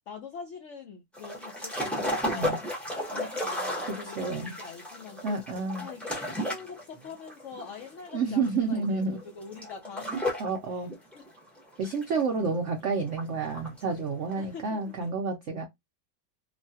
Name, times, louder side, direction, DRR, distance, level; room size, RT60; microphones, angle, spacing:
voice 1, 0.1-2.5 3.0-5.4 5.8-10.3 10.7-10.9 11.1-11.3 12.4-13.0 13.3-13.5 14.4-15.1, left 5 dB, 85° left, 0.6 m, -44 dB
sound 1, 1.1-10.6 10.9-12.7 13.1-13.9 14.2-14.4, left 1 dB, ahead, 0.4 m, -34 dB
voice 2, 4.2-4.5 5.2-5.9 8.1-9.2 10.4-10.9 11.8-15.6, right 4 dB, 80° right, 0.6 m, -29 dB
3.1 x 2.2 x 2.7 m
omnidirectional pair, 2.0 m